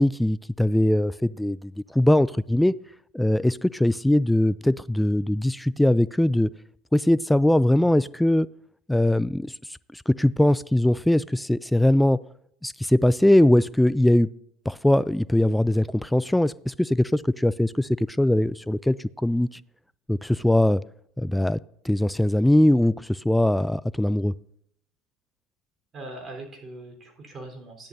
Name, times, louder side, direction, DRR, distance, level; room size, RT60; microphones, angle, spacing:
voice 1, 0.0-2.7 3.1-6.5 6.9-8.5 8.9-9.5 9.9-12.2 12.6-14.3 14.7-17.9 18.2-19.0 19.2-19.5 20.1-20.8 21.2-21.6 21.8-24.3, left 1 dB, 5° left, 0.3 m, -21 dB
voice 2, 25.9-27.9, right 2 dB, 35° right, 3.8 m, -41 dB
14.0 x 10.5 x 2.6 m
hypercardioid pair, 75°, 0 cm